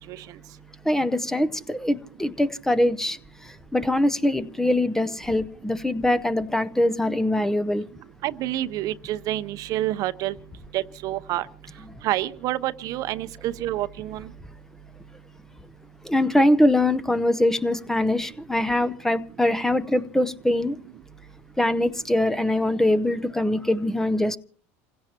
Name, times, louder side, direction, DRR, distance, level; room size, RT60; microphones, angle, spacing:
voice 1, 0.9-3.2 3.7-7.8 16.0-20.7 21.6-24.4, left 1 dB, 5° left, 0.7 m, -23 dB
voice 2, 8.2-10.3 10.7-11.5 12.0-14.3, right 14 dB, 55° right, 0.7 m, -28 dB
28.5 x 16.5 x 2.9 m
supercardioid pair, 105°, 7 cm